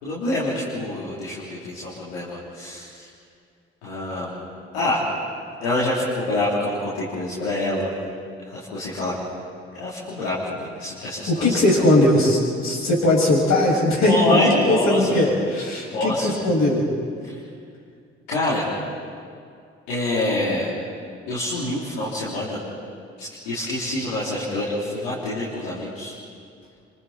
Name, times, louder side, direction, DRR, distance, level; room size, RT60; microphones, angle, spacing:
voice 1, 0.0-3.1 3.8-4.3 4.7-5.0 5.6-7.9 8.4-9.1 9.7-11.7 14.0-15.2 15.9-16.4 17.2-17.3 18.3-18.6 19.9-20.7 21.3-22.6 23.2-26.1, left 1 dB, 85° left, -9 dB, 3.8 m, -26 dB
voice 2, 11.3-16.8, left 1 dB, 65° left, -3 dB, 7.3 m, -19 dB
29.0 x 27.0 x 4.4 m, 2.3 s
hypercardioid pair, 40°, 31 cm